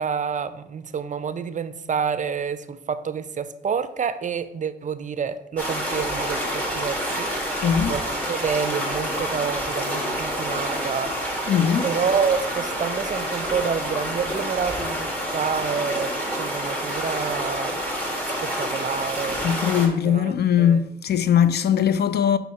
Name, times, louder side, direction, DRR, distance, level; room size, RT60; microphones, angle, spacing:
voice 1, 0.0-7.3 7.9-11.2 11.8-17.8 18.4-19.5 20.0-20.8, right 6 dB, 45° right, 0.5 m, -28 dB
sound 1, 5.6-19.9, equal, 10° left, 2.0 m, -28 dB
voice 2, 7.6-7.9 11.5-11.8 19.4-22.4, left 8 dB, 60° left, 0.5 m, -20 dB
5.4 x 4.2 x 5.7 m
cardioid pair, 70°, 18 cm